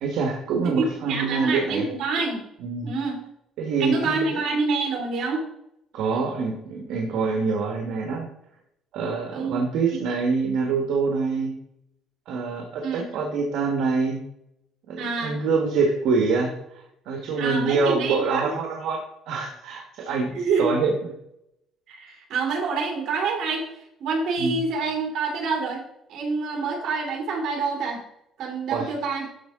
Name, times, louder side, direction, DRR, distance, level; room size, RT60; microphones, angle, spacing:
voice 1, 0.0-1.8 2.6-2.9 3.6-4.4 5.9-8.3 8.9-11.5 12.3-14.2 14.9-19.0 19.3-20.3 20.6-21.1 24.4-24.6 28.7-28.9, right 4 dB, 75° right, 1 dB, 1.4 m, -25 dB
voice 2, 0.8-2.5 2.8-3.2 3.8-5.5 9.3-9.6 9.9-10.0 12.8-13.0 15.0-15.4 17.4-18.5 20.3-20.7 21.9-23.6 24.0-25.8 26.1-28.0 28.4-29.2, right 4 dB, 60° right, 1 dB, 2.7 m, -27 dB
12.0 x 4.7 x 3.7 m, 0.79 s
cardioid pair, 135°, 0 cm